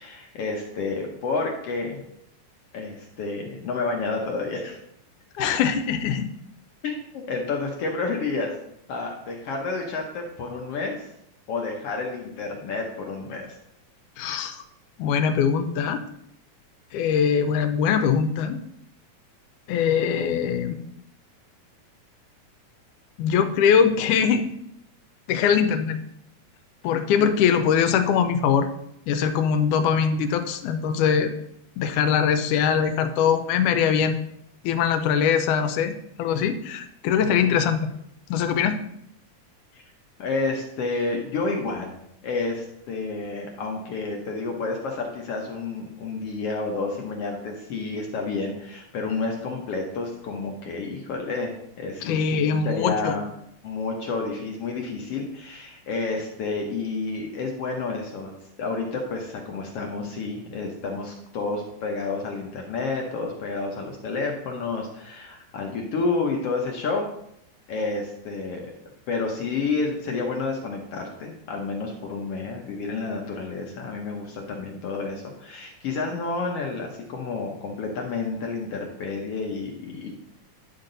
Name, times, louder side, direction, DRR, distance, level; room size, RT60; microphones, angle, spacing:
voice 1, 0.0-2.0 2.7-4.8 5.4-5.5 6.8-8.5 8.9-11.1 11.5-13.6 39.7-39.8 40.2-41.9 42.2-53.2 53.6-58.3 58.6-67.1 67.7-68.7 69.1-80.1, left 3 dB, 65° left, 1 dB, 1.6 m, -30 dB
voice 2, 5.4-6.3 14.2-14.6 15.0-16.0 16.9-18.6 19.7-20.8 23.2-24.5 25.3-26.0 26.8-28.7 29.1-31.3 31.8-34.2 34.6-35.9 36.2-37.9 38.3-38.8 52.1-53.2, left 7 dB, 85° left, 9 dB, 2.2 m, -22 dB
10.5 x 5.9 x 3.9 m, 0.77 s
omnidirectional pair, 3.6 m